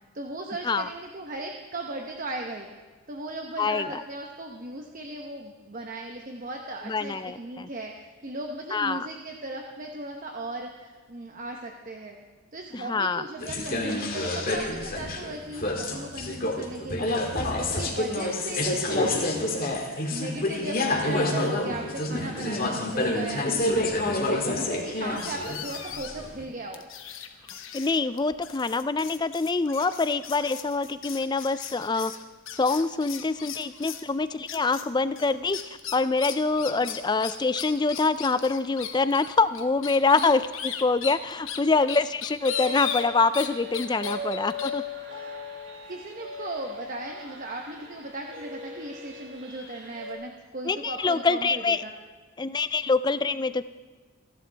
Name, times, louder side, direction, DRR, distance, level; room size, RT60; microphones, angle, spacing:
voice 1, 0.1-2.7 3.1-12.2 12.5-17.2 17.6-19.7 20.1-26.9 40.1-40.3 45.9-51.9, right 2 dB, 40° right, 2 dB, 1.0 m, -37 dB
voice 2, 3.6-4.0 6.9-7.7 8.7-9.1 12.7-13.2 27.7-32.1 32.6-35.6 35.9-44.8 50.7-51.8 52.4-53.6, left 3 dB, 20° left, 13 dB, 0.4 m, -25 dB
sound 1, 13.4-26.4, left 1 dB, 45° left, 2.0 m, -28 dB
sound 2, 25.2-26.3 26.7-34.1 34.5-34.9 35.2-43.5 43.7-44.7, left 9 dB, 70° left, 1.1 m, -37 dB
sound 3, 42.4-50.1, left 3 dB, 60° right, 5.8 m, -38 dB
28.0 x 11.5 x 3.4 m, 1.4 s
head